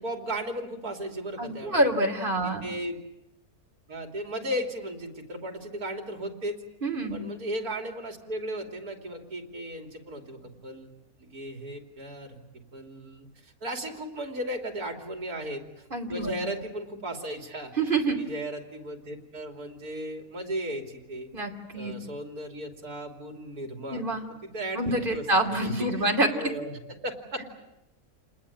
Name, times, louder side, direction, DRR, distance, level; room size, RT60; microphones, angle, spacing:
voice 1, 0.0-1.9 2.4-3.0 3.9-6.6 7.1-10.9 11.2-15.6 16.1-17.7 18.2-21.3 21.7-24.1 24.4-26.1 26.3-27.4, right 1 dB, 70° right, 4 dB, 3.5 m, -36 dB
voice 2, 1.4-2.7 6.8-7.2 15.9-16.3 17.8-18.2 21.3-21.9 23.9-24.2 24.7-26.5, right 2 dB, 35° right, 3 dB, 3.0 m, -26 dB
28.5 x 20.5 x 8.5 m, 0.91 s
omnidirectional pair, 1.7 m